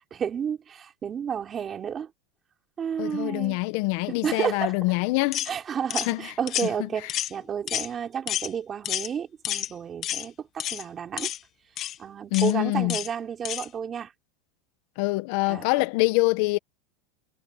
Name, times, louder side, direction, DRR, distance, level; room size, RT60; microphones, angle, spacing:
voice 1, 0.1-2.1 2.8-3.6 4.1-4.7 5.5-11.3 12.0-14.1 15.5-15.7, right 8 dB, 25° right, 4.1 m, -31 dB
voice 2, 3.0-5.4 6.1-6.3 12.3-13.0 15.0-16.6, left 23 dB, 60° left, 1.3 m, -25 dB
sound 1, 5.3-5.5 5.9-6.1 6.5-6.7 7.1-7.4 7.7-7.9 8.3-8.5 8.8-9.1 9.4-9.7 10.0-10.3 10.6-10.8 11.2-11.4 11.8-12.0 12.3-12.5 12.9-13.1 13.5-13.7, left 12 dB, 40° left, 1.7 m, -30 dB
supercardioid pair, 130°, 0 cm